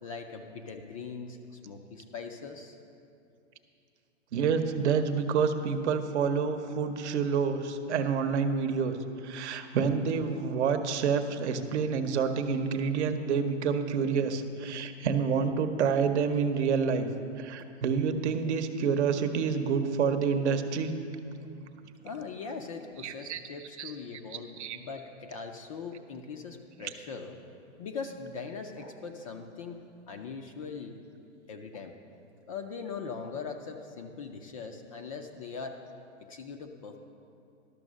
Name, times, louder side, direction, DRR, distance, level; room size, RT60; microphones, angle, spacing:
voice 1, 0.0-2.8 22.0-27.4 27.8-31.0 31.5-32.0 32.5-35.8 36.2-37.0, left 5 dB, 30° left, 5 dB, 0.4 m, -41 dB
voice 2, 4.3-9.0 9.2-17.1 17.4-20.9 23.0-23.4 23.8-23.9 24.3-24.8 26.8-26.9, right 6 dB, 65° right, 8 dB, 0.9 m, -28 dB
12.0 x 6.2 x 6.3 m, 2.5 s
hypercardioid pair, 150°, 38 cm